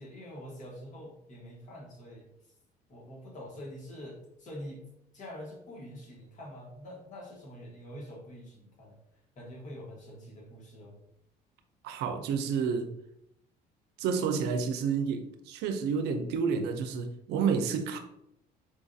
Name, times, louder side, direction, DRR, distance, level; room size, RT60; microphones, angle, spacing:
voice 1, 0.0-2.3 2.9-4.8 5.1-9.0 9.3-11.0, equal, 45° left, 1.2 m, -45 dB
voice 2, 11.8-12.9 14.0-18.0, right 6 dB, 80° right, 0.5 m, -30 dB
4.4 x 2.3 x 2.6 m
cardioid pair, 110°, 17 cm